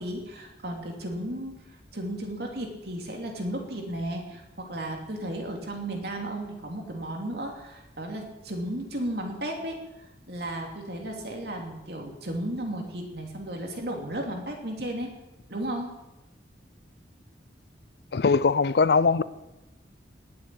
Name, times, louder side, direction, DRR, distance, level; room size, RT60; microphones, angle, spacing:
voice 1, 0.0-1.6 1.9-15.1 15.5-15.9, right 1 dB, 60° right, 3.0 m, -34 dB
voice 2, 18.1-19.2, left 4 dB, 60° left, 0.5 m, -21 dB
19.5 x 7.7 x 8.6 m
head